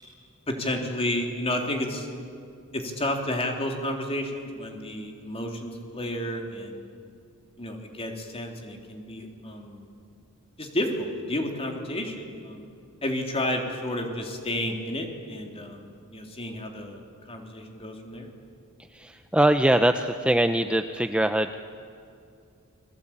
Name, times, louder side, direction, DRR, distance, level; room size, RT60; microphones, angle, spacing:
voice 1, 0.5-2.1 2.7-6.8 7.6-9.9 10.6-12.7 13.0-18.3, left 1 dB, 25° left, 2 dB, 3.5 m, -31 dB
voice 2, 18.9-21.5, right 1 dB, 5° right, 7 dB, 0.6 m, -22 dB
29.5 x 22.0 x 8.9 m, 2.3 s
head